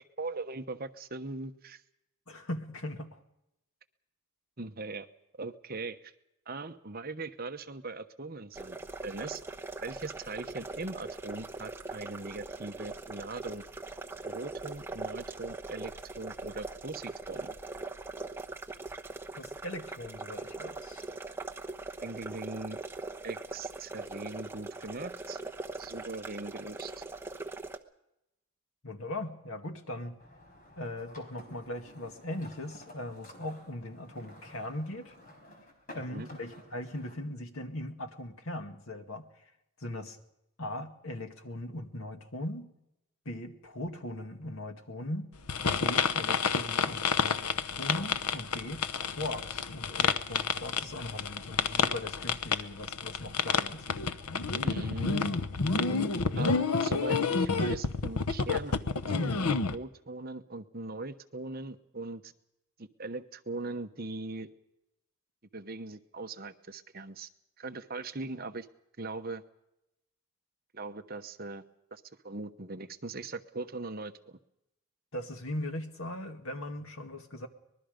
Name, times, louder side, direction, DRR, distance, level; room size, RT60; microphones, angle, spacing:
voice 1, 0.2-1.8 4.6-5.1 5.4-6.1 6.5-8.8 9.0-9.4 9.8-13.6 14.2-17.5 22.0-22.8 23.2-25.4 25.8-27.0 36.1-36.3 54.6-55.4 56.3-58.8 59.1-59.4 59.7-62.3 62.8-64.5 65.5-67.3 67.6-68.7 69.0-69.4 70.7-71.6 71.9-74.4, right 3 dB, 40° right, 8 dB, 1.0 m, -40 dB
voice 2, 2.3-3.2 19.4-21.1 28.8-30.2 30.8-35.1 35.9-39.3 39.8-40.2 40.6-42.7 43.3-45.3 45.7-47.4 47.7-53.9 75.1-77.5, left 1 dB, 70° left, 6 dB, 2.1 m, -39 dB
sound 1, 8.5-27.8, right 3 dB, 10° right, 1.0 m, -41 dB
sound 2, 30.2-37.2, left 1 dB, 40° left, 4.6 m, -52 dB
sound 3, 45.5-59.8, left 5 dB, 90° left, 1.0 m, -30 dB
24.5 x 21.0 x 5.2 m, 0.86 s
head